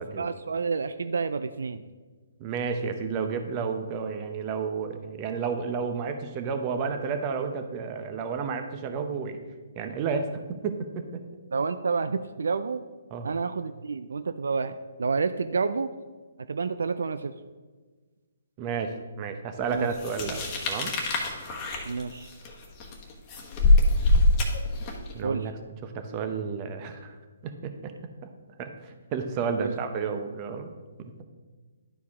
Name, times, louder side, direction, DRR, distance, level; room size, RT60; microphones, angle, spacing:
voice 1, 0.2-1.8 11.5-12.8 13.2-15.9 16.5-17.3 19.7-19.9 21.9-22.3 25.2-25.5 29.6-29.7, right 4 dB, 75° right, 11 dB, 0.3 m, -29 dB
voice 2, 2.4-9.4 9.8-11.2 13.1-13.3 18.6-20.9 25.1-27.1 27.4-27.9 28.2-28.3 28.6-30.7 31.0-31.1, right 5 dB, 30° right, 7 dB, 0.8 m, -31 dB
sound 1, 20.0-25.1, left 2 dB, 25° left, 1.2 m, -24 dB
11.0 x 4.7 x 3.6 m, 1.4 s
hypercardioid pair, 145°, 0 cm